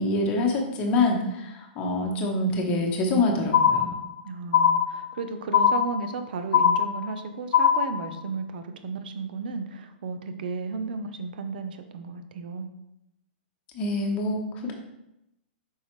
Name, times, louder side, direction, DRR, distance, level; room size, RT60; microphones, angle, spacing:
voice 1, 0.0-3.9 13.7-14.7, left 2 dB, 20° left, 1 dB, 1.2 m, -25 dB
sound 1, 3.5-4.2 4.5-5.2 5.5-6.2 6.5-7.2 7.5-8.2, left 8 dB, 60° left, 0.5 m, -21 dB
voice 2, 4.2-12.7, right 4 dB, 55° right, 8 dB, 0.8 m, -34 dB
7.7 x 5.6 x 3.2 m, 0.86 s
hypercardioid pair, 165°, 6 cm